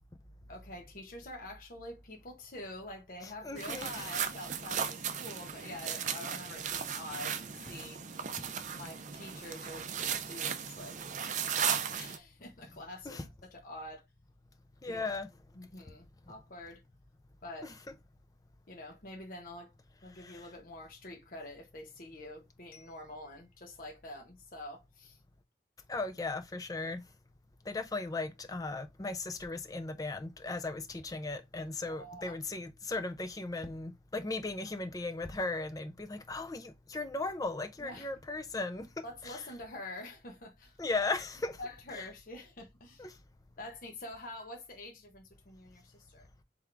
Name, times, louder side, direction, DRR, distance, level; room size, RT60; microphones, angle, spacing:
voice 1, 0.5-7.3 7.6-8.0 8.8-11.0 11.5-14.0 14.8-15.1 15.5-16.8 17.4-17.7 18.7-19.7 20.0-25.2 31.9-32.4 37.8-38.1 39.0-40.8 41.6-43.1 43.6-46.3, left 1 dB, 50° left, 0.8 m, -46 dB
voice 2, 3.2-4.1 8.4-8.5 12.6-12.7 13.0-13.3 14.8-15.3 16.3-16.4 17.6-17.7 20.2-20.5 25.9-27.0 27.7-39.5 40.8-41.6 41.9-42.1 43.0-43.2, left 3 dB, 20° left, 0.5 m, -37 dB
sound 1, 3.6-12.2, right 7 dB, 45° right, 0.5 m, -36 dB
3.6 x 3.5 x 3.3 m
head